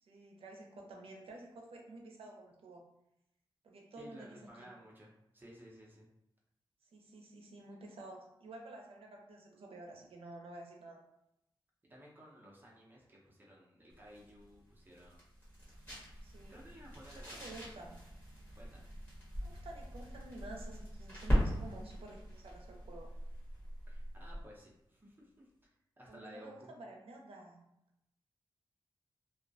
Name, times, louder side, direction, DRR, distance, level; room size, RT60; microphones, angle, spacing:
voice 1, 0.0-2.8 3.6-4.7 6.9-11.0 16.2-16.6 17.3-18.0 19.4-23.1 26.1-27.6, right 2 dB, 85° right, 1 dB, 0.5 m, -51 dB
voice 2, 4.0-6.1 11.8-15.2 16.5-17.8 18.6-18.9 23.9-25.5 26.0-26.7, equal, 20° right, -4 dB, 0.6 m, -56 dB
sound 1, 13.9-24.6, equal, 20° left, 1.1 m, -40 dB
2.3 x 2.1 x 2.6 m, 0.82 s
wide cardioid pair, 145°, 9 cm